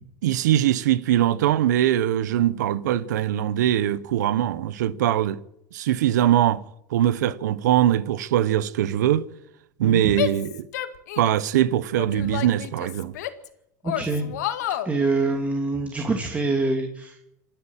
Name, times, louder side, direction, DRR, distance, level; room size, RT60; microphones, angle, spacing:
voice 1, 0.2-5.4 5.7-6.6 6.9-9.2 9.8-10.7 11.2-13.1, right 12 dB, 85° right, 1.2 m, -22 dB
voice 2, 9.8-10.2 12.2-12.3 13.8-14.4 14.8-17.2, right 3 dB, 15° right, 2.9 m, -25 dB
Female speech woman speaking / Yell, 10.1-11.5 11.9-13.5 13.8-14.9, left 13 dB, 85° left, 2.0 m, -30 dB
27.0 x 10.5 x 9.0 m
supercardioid pair, 125°, 9 cm